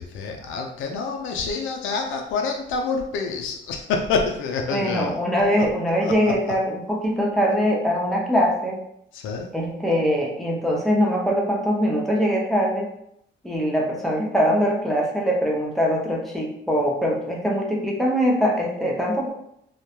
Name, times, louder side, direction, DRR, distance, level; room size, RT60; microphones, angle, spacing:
voice 1, 0.0-5.1 5.5-5.6 6.0-6.3 9.1-9.5, left 4 dB, 85° left, 3 dB, 0.4 m, -27 dB
voice 2, 4.7-8.8 9.5-12.9 13.4-19.3, equal, ahead, -2 dB, 0.7 m, -22 dB
2.2 x 2.1 x 2.9 m, 0.74 s
cardioid pair, 90°, 20 cm